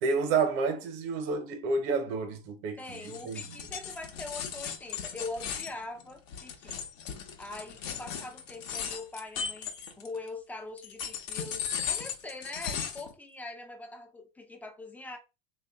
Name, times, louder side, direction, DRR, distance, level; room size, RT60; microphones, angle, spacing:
voice 1, 0.0-3.4, right 4 dB, 55° right, 1.1 m, -30 dB
sound 1, 2.8-10.3 10.8-13.1, left 7 dB, 60° left, 0.9 m, -37 dB
voice 2, 2.8-6.8 7.4-15.2, left 2 dB, 5° left, 0.6 m, -42 dB
3.3 x 2.5 x 3.5 m
supercardioid pair, 145°, 31 cm